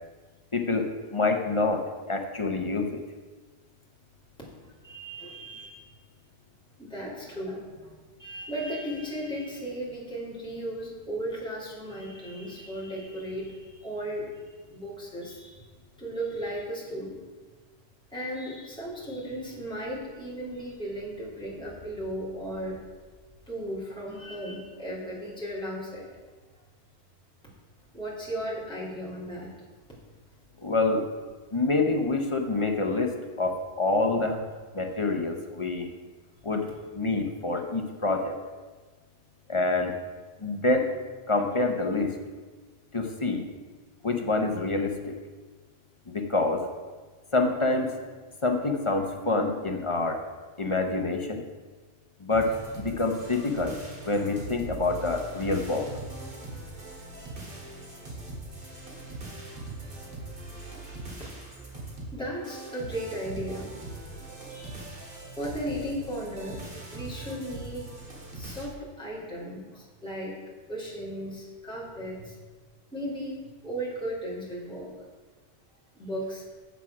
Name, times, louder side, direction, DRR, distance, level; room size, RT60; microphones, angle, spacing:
voice 1, 0.5-3.0 30.6-31.0 31.5-34.4 34.7-35.9 36.4-38.3 39.5-39.9 40.4-40.9 41.3-42.1 42.9-43.5 44.0-45.2 46.1-46.7 47.3-47.9 48.4-50.2 50.6-51.4 52.2-53.8 54.1-55.9, left 3 dB, 30° left, 3 dB, 0.8 m, -27 dB
voice 2, 4.8-5.9 6.8-14.2 14.7-15.7 16.0-17.2 18.1-22.8 23.5-26.1 27.9-29.5 60.8-61.4 61.8-63.7 64.5-64.9 65.4-66.6 66.9-67.9 68.3-70.4 70.7-72.4 72.9-74.9 75.9-76.4, equal, 5° left, -7 dB, 2.8 m, -36 dB
sound 1, 52.3-68.7, right 2 dB, 50° right, 2.2 m, -41 dB
7.3 x 7.1 x 6.0 m, 1.3 s
omnidirectional pair, 1.1 m